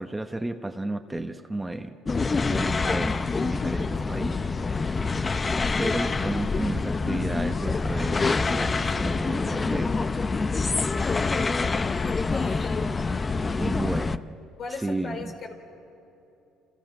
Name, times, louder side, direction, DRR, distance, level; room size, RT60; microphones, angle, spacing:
voice 1, 0.0-1.9 2.4-5.0 5.8-9.9 13.5-14.3 14.7-15.3, right 2 dB, 10° right, 6 dB, 1.0 m, -33 dB
sound 1, 2.1-14.2, left 4 dB, 25° left, 0.6 m, -26 dB
voice 2, 10.9-11.4 12.3-12.9 14.6-15.5, left 4 dB, 50° left, 4 dB, 3.9 m, -38 dB
29.0 x 28.5 x 6.1 m, 2.9 s
cardioid pair, 105°, 0 cm